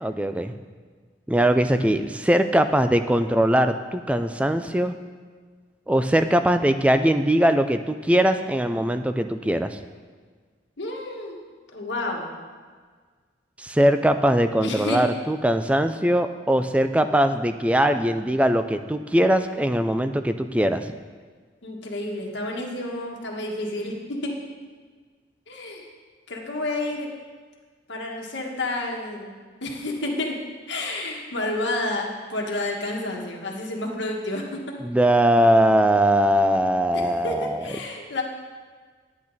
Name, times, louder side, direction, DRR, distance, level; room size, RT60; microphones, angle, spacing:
voice 1, 0.0-0.5 1.3-4.9 5.9-9.8 13.6-20.9 34.8-37.8, right 1 dB, 5° right, 9 dB, 0.3 m, -21 dB
voice 2, 10.8-11.4 11.7-12.3 14.6-15.0 21.6-24.4 25.5-25.9 26.3-27.1 27.9-29.3 29.6-30.4 30.7-34.6 36.9-38.2, left 2 dB, 75° left, 0 dB, 1.6 m, -30 dB
10.5 x 8.6 x 4.1 m, 1.6 s
head